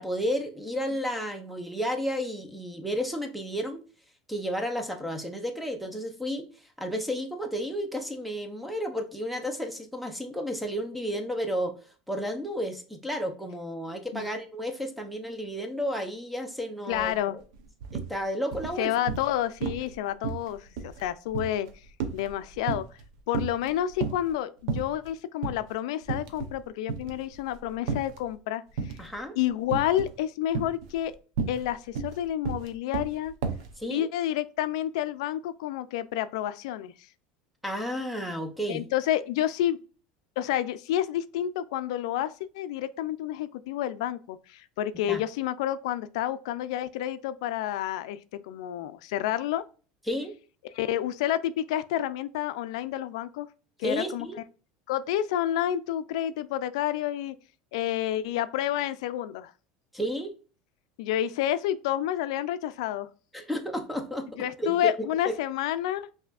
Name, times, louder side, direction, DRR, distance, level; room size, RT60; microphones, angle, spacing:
voice 1, 0.0-3.8 4.3-6.5 6.8-11.7 12.1-17.1 17.9-18.9 29.0-29.4 33.8-34.1 37.6-38.9 45.1-45.2 50.1-50.3 53.8-54.4 59.9-60.3 63.3-64.3 64.6-64.9 65.3-65.4, equal, ahead, 0.5 m, -32 dB
voice 2, 16.9-17.4 18.8-21.7 22.1-22.8 23.3-29.0 29.4-31.1 31.5-33.3 33.9-36.9 38.7-39.8 40.4-48.2 48.4-49.6 50.7-53.5 53.8-54.3 54.9-57.3 57.7-59.5 61.0-63.1 64.4-66.1, left 12 dB, 85° left, 0.3 m, -29 dB
sound 1, 16.9-17.1 17.4-18.1 18.5-19.3 19.6-19.9 20.2-23.0 23.3-24.3 24.7-25.1 25.4-25.6 26.0-26.6 26.9-28.2 28.8-29.2 29.7-30.2 30.5-33.7, right 5 dB, 75° right, 0.7 m, -32 dB
5.6 x 2.7 x 2.4 m
cardioid pair, 160°, 3 cm